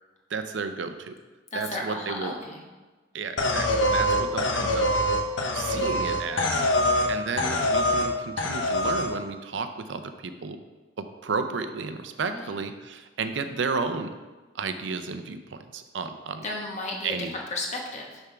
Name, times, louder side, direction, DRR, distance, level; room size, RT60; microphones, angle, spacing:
voice 1, 0.3-1.1 1.5-2.3 3.1-4.9 5.5-10.6 11.0-14.1 14.5-16.4 17.0-17.3, right 4 dB, 70° right, 8 dB, 0.5 m, -32 dB
voice 2, 1.5-2.6 12.2-12.5 16.4-18.2, left 2 dB, 40° left, 0 dB, 1.1 m, -34 dB
sound 1, 3.4-7.1 7.4-8.1 8.4-9.1, left 1 dB, 80° left, 0.8 m, -24 dB
6.7 x 3.6 x 5.7 m, 1.3 s
head